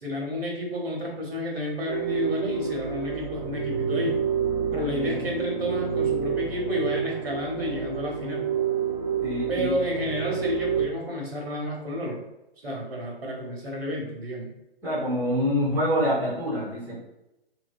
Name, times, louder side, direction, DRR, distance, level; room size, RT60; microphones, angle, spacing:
voice 1, 0.0-4.2 4.7-8.5 9.5-12.2 12.6-14.5, left 1 dB, 70° right, -1 dB, 1.1 m, -31 dB
sound 1, 1.9-10.9, right 7 dB, 50° right, 0.6 m, -28 dB
voice 2, 4.7-5.3 9.2-9.7 14.8-17.0, equal, 5° right, -8 dB, 0.7 m, -26 dB
2.9 x 2.7 x 2.6 m, 0.90 s
figure-of-eight pair, 125°, 31 cm